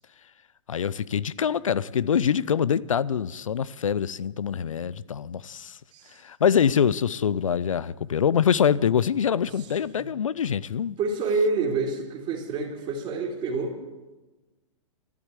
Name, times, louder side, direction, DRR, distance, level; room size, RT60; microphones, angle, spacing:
voice 1, 0.7-5.8 6.2-11.0, left 8 dB, 85° left, 0.5 m, -24 dB
voice 2, 11.0-13.8, right 3 dB, 30° right, 3.0 m, -27 dB
13.5 x 11.0 x 8.2 m
hypercardioid pair, 120°, 16 cm